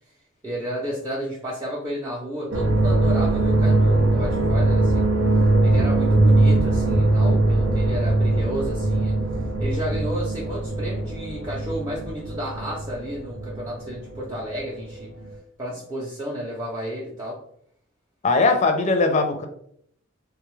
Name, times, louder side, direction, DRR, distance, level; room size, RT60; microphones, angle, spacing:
voice 1, 0.4-5.1 5.6-9.2 9.6-15.1 15.6-17.4, equal, 15° right, -5 dB, 0.6 m, -32 dB
sound 1, 2.5-14.6 14.9-15.3, right 2 dB, 90° right, 0.5 m, -21 dB
voice 2, 18.2-19.5, left 3 dB, 35° left, 5 dB, 0.4 m, -20 dB
3.5 x 2.3 x 3.1 m, 0.66 s
head